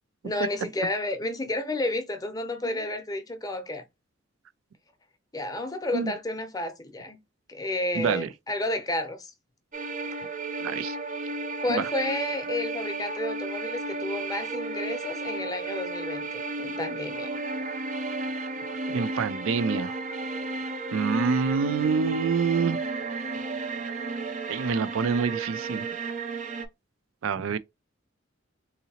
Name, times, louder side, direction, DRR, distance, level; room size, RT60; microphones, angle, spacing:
voice 1, 0.2-3.8 5.3-7.2 7.5-9.3 11.6-17.3, left 1 dB, 20° left, 0.7 m, -31 dB
voice 2, 7.9-8.3 10.6-11.0 11.7-11.9 18.9-19.9 20.9-22.8 24.5-25.8 27.2-27.6, right 5 dB, 85° right, 0.4 m, -26 dB
sound 1, 9.7-26.7, right 3 dB, 40° right, 0.6 m, -33 dB
3.9 x 2.8 x 2.8 m
head